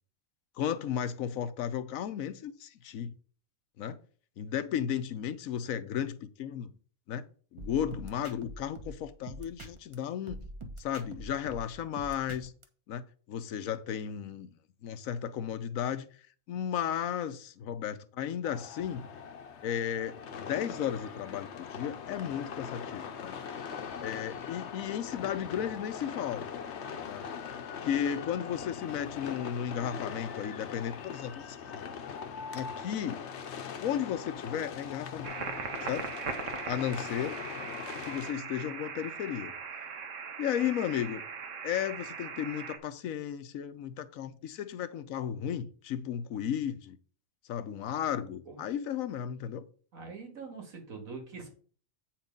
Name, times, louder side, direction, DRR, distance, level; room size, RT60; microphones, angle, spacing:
voice 1, 0.6-3.1 3.8-4.0 4.4-6.7 7.1-7.2 7.5-10.4 10.8-12.5 12.9-14.5 14.8-16.1 16.5-19.1 19.6-23.4 24.0-26.5 27.1-27.3 27.8-31.9 32.5-33.3 33.8-35.3 35.8-36.1 36.7-37.4 38.1-39.5 40.4-41.2 41.6-47.0 47.5-49.7, left 9 dB, 85° left, 1.1 m, -34 dB
sound 1, 7.6-9.9 10.3-12.6, right 1 dB, 25° right, 1.0 m, -45 dB
sound 2, 18.4-38.3, left 6 dB, 60° left, 1.0 m, -41 dB
sound 3, 35.2-42.8, right 6 dB, 65° right, 1.4 m, -40 dB
voice 2, 49.9-51.5, right 4 dB, 90° right, 2.4 m, -43 dB
8.4 x 4.4 x 5.2 m
omnidirectional pair, 1.4 m